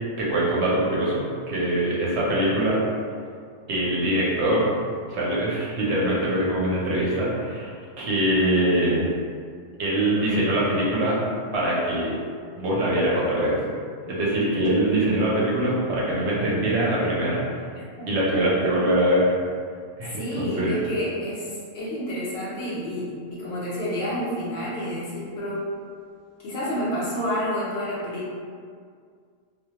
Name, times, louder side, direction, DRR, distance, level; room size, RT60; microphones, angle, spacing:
voice 1, 0.2-2.8 3.7-4.7 5.1-9.1 9.8-11.2 11.5-12.1 12.6-13.6 14.1-17.4 18.1-19.4 20.0-20.7, right 1 dB, 65° right, -6 dB, 0.8 m, -23 dB
voice 2, 20.1-25.7 26.4-28.3, equal, 65° left, -7 dB, 0.7 m, -29 dB
2.2 x 2.1 x 2.8 m, 2.1 s
omnidirectional pair, 1.3 m